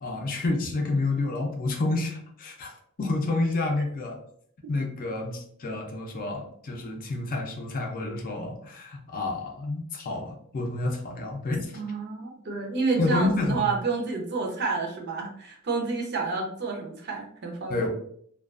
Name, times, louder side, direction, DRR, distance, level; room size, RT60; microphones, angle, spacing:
voice 1, 0.0-2.7 3.0-4.2 4.7-11.7 13.0-13.6 17.7-17.9, left 2 dB, 40° left, 1 dB, 0.5 m, -29 dB
voice 2, 11.7-17.9, right 4 dB, 50° right, 1 dB, 0.6 m, -29 dB
2.3 x 2.3 x 2.3 m, 0.65 s
head